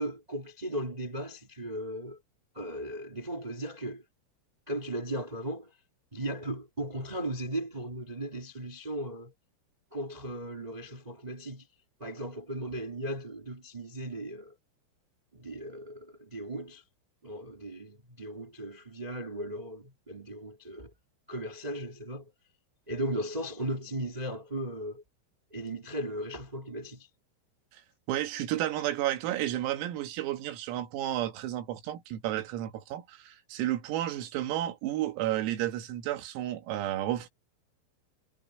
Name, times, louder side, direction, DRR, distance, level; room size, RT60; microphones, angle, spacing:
voice 1, 0.0-2.2 2.5-4.0 4.7-5.7 6.1-9.3 9.9-11.7 12.0-14.5 15.3-16.8 17.2-20.9 21.3-22.3 22.9-25.0 25.5-27.1, right 1 dB, 25° right, 0.9 m, -37 dB
voice 2, 28.1-37.3, right 13 dB, 85° right, 4.5 m, -32 dB
omnidirectional pair, 6.0 m